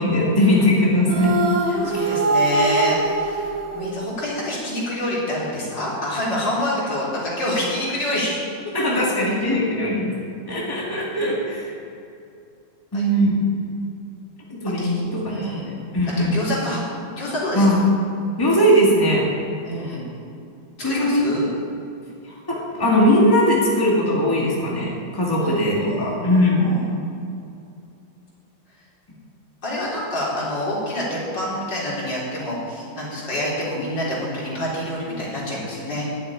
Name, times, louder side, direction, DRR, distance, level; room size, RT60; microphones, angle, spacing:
voice 1, 0.0-1.3 1.8-2.1 8.7-10.1 10.5-11.7 12.9-13.5 14.5-16.3 17.5-17.8 18.4-19.3 19.9-20.0 20.8-21.5 22.2-26.7, equal, 10° left, -4 dB, 2.0 m, -20 dB
sound 1, 1.1-4.5, right 2 dB, 70° right, 1.8 m, -22 dB
voice 2, 1.7-8.4 8.8-9.2 12.9-13.2 14.8-14.9 15.3-15.7 16.2-16.8 17.2-17.7 19.6-20.1 20.8-21.5 25.4-26.9 29.6-36.1, left 1 dB, 65° left, -7 dB, 4.4 m, -27 dB
10.5 x 8.0 x 9.9 m, 2.5 s
omnidirectional pair, 2.1 m